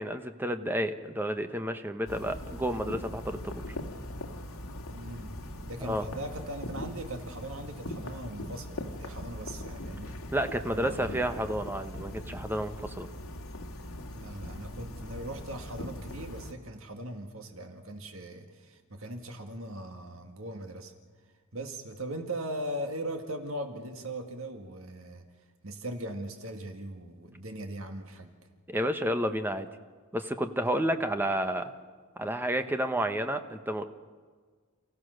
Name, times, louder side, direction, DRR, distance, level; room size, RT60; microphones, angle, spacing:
voice 1, 0.0-3.6 5.8-6.0 10.3-13.1 28.7-29.7 30.1-31.7 32.2-33.8, equal, 10° right, 8 dB, 1.0 m, -31 dB
sound 1, 2.1-16.5, left 1 dB, 80° left, 1.9 m, -40 dB
voice 2, 4.9-10.2 10.7-11.2 14.1-20.9 21.5-25.2 25.6-28.3, right 1 dB, 65° right, 5 dB, 1.9 m, -39 dB
29.0 x 15.5 x 6.5 m, 1.6 s
head